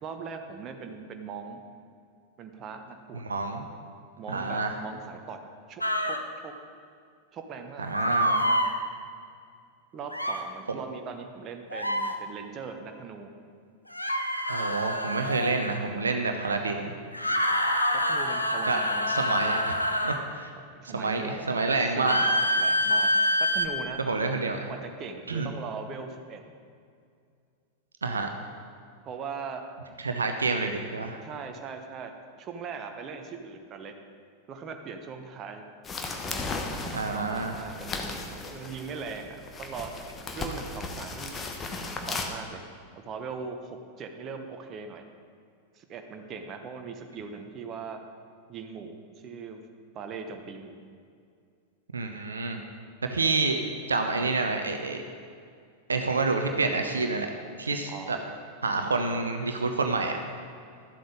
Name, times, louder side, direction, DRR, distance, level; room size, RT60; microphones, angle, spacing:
voice 1, 0.0-1.6 2.4-3.2 4.2-5.4 5.7-6.2 6.4-6.5 7.3-8.6 9.9-13.3 18.1-19.7 20.7-23.1 23.4-24.0 24.7-26.4 29.0-29.6 31.2-32.1 32.4-34.0 34.5-35.6 36.8-40.0 40.3-41.5 42.1-42.6 43.0-45.0 45.7-48.0 48.5-49.6 49.9-50.8 57.9-58.3, right 5 dB, 30° right, 5 dB, 1.0 m, -40 dB
voice 2, 3.1-3.6 4.3-4.7 7.8-8.3 10.7-10.8 14.5-16.9 18.7-18.8 19.1-19.8 20.0-20.5 20.9-22.2 24.0-24.7 25.3-25.5 28.0-28.3 30.0-31.2 36.9-37.5 51.9-52.6 53.1-53.6 53.9-55.0 55.9-57.3 57.6-58.2 58.6-60.3, right 3 dB, 75° right, 5 dB, 0.7 m, -28 dB
sound 1, 5.8-6.2 7.9-8.7 10.1-10.4 11.7-12.1 13.9-15.8 17.1-20.2 22.0-23.7, equal, 90° left, 0.7 m, -26 dB
sound 2, 35.8-42.3, left 3 dB, 20° left, 1.1 m, -36 dB
12.5 x 7.7 x 5.1 m, 2.3 s
figure-of-eight pair, 90°, 0 cm